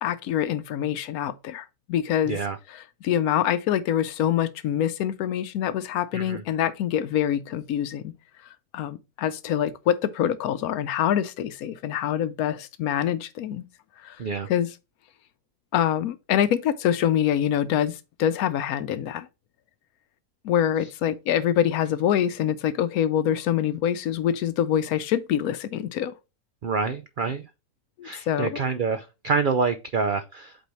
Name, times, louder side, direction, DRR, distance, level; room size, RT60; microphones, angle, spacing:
voice 1, 0.0-2.4 2.7-8.1 8.7-13.6 14.0-14.2 14.5-14.7 15.7-19.3 20.4-26.1 28.0-28.6, left 10 dB, 75° left, 1.1 m, -25 dB
voice 2, 2.3-2.6 6.1-6.4 14.2-14.5 26.6-27.4 28.0-30.6, right 5 dB, 85° right, 0.4 m, -27 dB
8.2 x 4.1 x 3.0 m
omnidirectional pair, 1.6 m